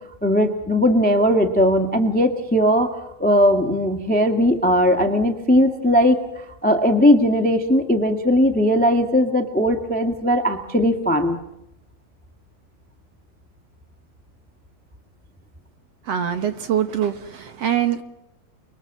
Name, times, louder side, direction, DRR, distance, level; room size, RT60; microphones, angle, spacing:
voice 1, 0.2-11.4, equal, 10° left, 5 dB, 0.4 m, -18 dB
voice 2, 16.1-18.0, right 9 dB, 55° right, 8 dB, 2.0 m, -23 dB
30.0 x 22.0 x 7.5 m, 0.89 s
omnidirectional pair, 4.1 m